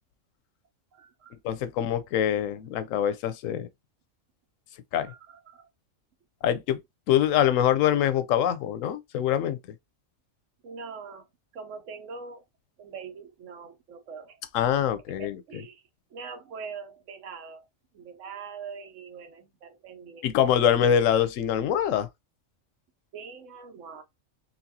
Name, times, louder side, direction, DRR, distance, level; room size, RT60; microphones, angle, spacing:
voice 1, 0.9-1.3 5.0-5.7 8.5-8.6 10.6-11.3 11.5-12.4 12.8-14.4 15.1-15.8 16.1-17.7 17.9-20.5 23.1-24.0, right 5 dB, 75° right, 1.1 m, -43 dB
voice 2, 1.4-3.7 4.9-5.1 6.4-6.8 7.1-9.6 14.5-15.4 20.2-22.1, left 10 dB, 85° left, 1.0 m, -24 dB
4.0 x 2.3 x 2.7 m
omnidirectional pair, 1.3 m